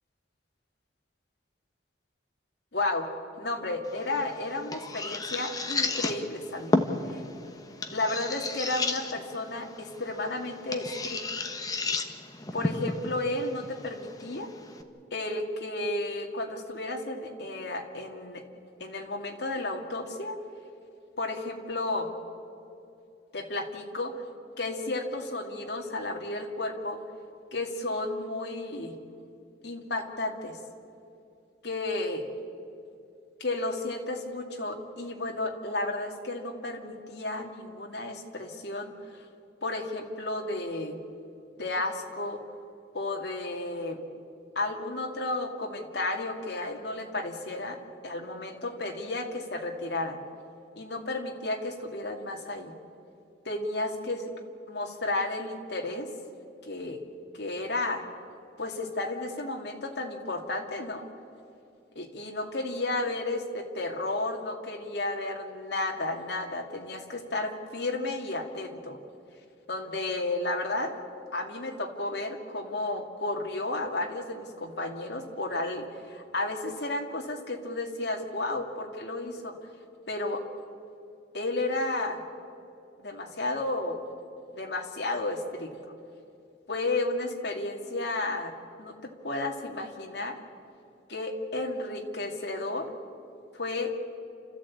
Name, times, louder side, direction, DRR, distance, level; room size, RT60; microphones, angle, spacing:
voice 1, 2.7-3.1 3.4-6.8 7.1-7.2 7.9-11.4 12.5-14.5 15.1-18.4 18.8-20.4 21.2-22.1 23.3-24.1 24.6-27.0 27.5-28.9 29.6-30.6 31.6-32.2 33.4-38.9 39.6-41.0 41.6-42.4 42.9-44.0 44.6-47.8 48.0-50.2 50.8-52.7 53.4-54.3 54.7-56.1 56.6-57.0 57.3-58.0 58.6-61.1 62.0-69.0 69.7-70.9 71.3-79.5 80.1-80.4 81.3-82.2 83.0-84.0 84.5-85.7 86.7-88.5 88.8-88.9 89.2-90.4 91.1-92.9 93.5-93.9, left 2 dB, 65° left, 2 dB, 2.4 m, -32 dB
sound 1, 3.8-14.8, left 2 dB, 20° left, 1.1 m, -33 dB
29.5 x 14.0 x 8.6 m, 2.7 s
head